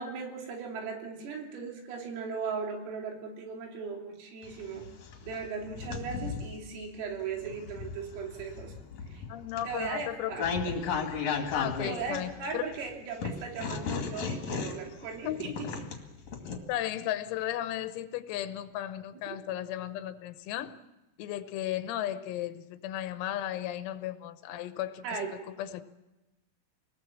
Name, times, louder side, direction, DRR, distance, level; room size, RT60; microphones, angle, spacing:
voice 1, 0.0-4.9 5.2-8.7 9.1-9.2 9.7-10.5 11.9-15.9 19.3-19.4 25.0-25.4, right 5 dB, 75° right, 1 dB, 5.6 m, -38 dB
sound 1, 4.4-6.6 7.2-12.8 13.2-16.6, left 5 dB, 45° left, 2.6 m, -35 dB
voice 2, 9.3-10.3 11.5-12.6 13.2-13.3 15.2-15.4 16.7-20.7 21.2-25.1 25.6-25.8, left 12 dB, 85° left, 11 dB, 3.7 m, -35 dB
26.0 x 20.0 x 7.3 m, 1.0 s
omnidirectional pair, 6.0 m